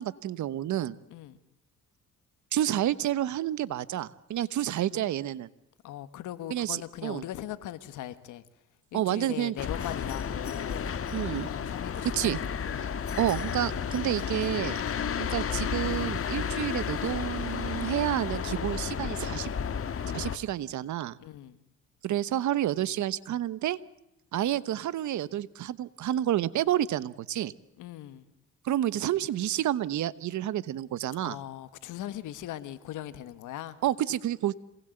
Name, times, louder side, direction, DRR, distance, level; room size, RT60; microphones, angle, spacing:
voice 1, 0.0-1.0 2.5-5.5 6.5-7.2 8.9-9.5 11.1-11.5 12.1-12.4 12.8-12.9 13.2-14.8 15.2-19.5 20.1-21.2 22.0-23.8 24.3-27.5 28.6-31.4 33.8-34.5, right 12 dB, 70° right, 1.1 m, -29 dB
voice 2, 5.8-8.4 8.9-10.9 11.5-12.9 21.2-21.6 27.8-28.2 31.2-33.8, left 12 dB, 85° left, 1.6 m, -39 dB
sound 1, 9.6-20.4, left 7 dB, 45° left, 1.6 m, -32 dB
27.0 x 19.5 x 7.9 m
cardioid pair, 90°, 30 cm